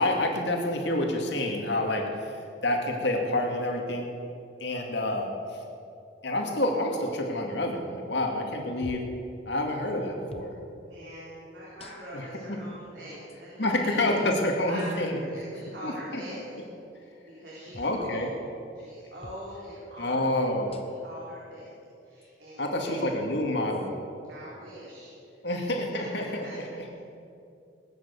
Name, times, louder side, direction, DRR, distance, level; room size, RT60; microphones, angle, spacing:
voice 1, 0.0-2.4 2.6-4.1 4.6-5.3 6.2-9.0 9.5-10.6 12.1-12.6 13.6-15.2 15.8-16.2 17.8-18.3 20.0-20.8 22.6-23.9 25.4-26.8, left 1 dB, 65° left, 1 dB, 2.4 m, -28 dB
sound 1, 8.8-9.2 10.3-10.6 11.8-12.3 13.3-13.4 14.8-15.0 17.7-18.0 19.2-19.5 20.7-21.1 22.2-22.3 23.7-23.9, left 1 dB, 30° left, 1.0 m, -46 dB
voice 2, 10.8-14.2 14.7-16.6 17.4-18.3 18.7-20.4 20.7-21.7 22.0-23.1 24.3-25.1 25.4-25.7 25.9-26.5, equal, 65° right, -7 dB, 4.1 m, -43 dB
19.5 x 9.4 x 7.2 m, 2.6 s
head